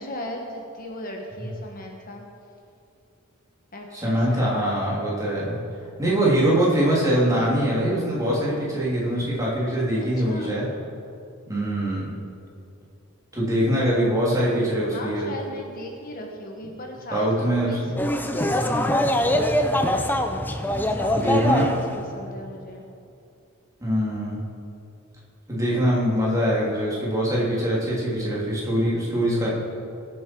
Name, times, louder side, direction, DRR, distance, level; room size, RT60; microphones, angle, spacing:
voice 1, 0.0-2.2 3.7-4.6 10.0-10.6 14.9-17.9 18.6-19.1 20.6-22.8, left 1 dB, 45° left, 1 dB, 1.3 m, -37 dB
voice 2, 3.9-5.6 6.0-10.7 11.5-12.1 13.3-15.3 17.1-18.0 21.1-21.7 23.8-24.4 25.5-29.5, equal, 15° right, -6 dB, 3.1 m, -23 dB
sound 1, 18.0-22.1, left 1 dB, 10° left, 0.6 m, -23 dB
21.5 x 7.4 x 4.6 m, 2.5 s
head